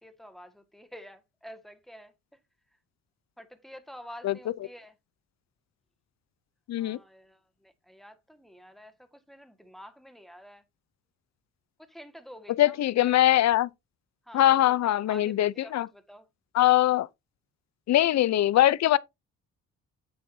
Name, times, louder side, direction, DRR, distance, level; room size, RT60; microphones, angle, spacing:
voice 1, 0.0-2.1 3.4-4.9 6.8-10.6 11.8-13.1 14.3-15.4 15.6-16.3, equal, ahead, 1.8 m, -49 dB
voice 2, 6.7-7.0 12.6-13.7 14.3-15.9 16.5-17.1 17.9-19.0, left 13 dB, 60° left, 0.7 m, -22 dB
8.7 x 7.7 x 2.8 m
cardioid pair, 90°, 30 cm